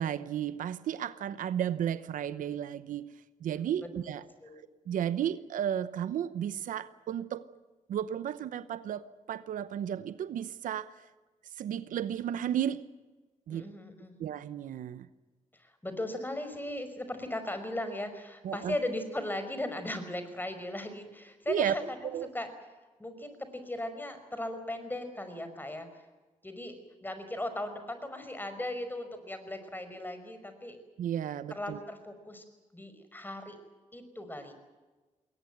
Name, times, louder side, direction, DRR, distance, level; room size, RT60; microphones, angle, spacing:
voice 1, 0.0-3.1 3.4-4.2 4.9-7.5 7.9-11.1 11.5-12.8 13.5-13.7 14.2-15.1 18.4-18.7 21.5-21.8 22.1-22.3 31.0-31.8, right 10 dB, 90° right, 14 dB, 0.9 m, -33 dB
voice 2, 13.5-14.1 15.5-22.5 23.0-26.0 26.4-26.8 27.0-30.8 31.5-32.4 32.7-33.6 33.9-34.5, left 1 dB, 15° left, 9 dB, 5.4 m, -37 dB
21.5 x 19.5 x 9.3 m, 1.2 s
cardioid pair, 75°, 13 cm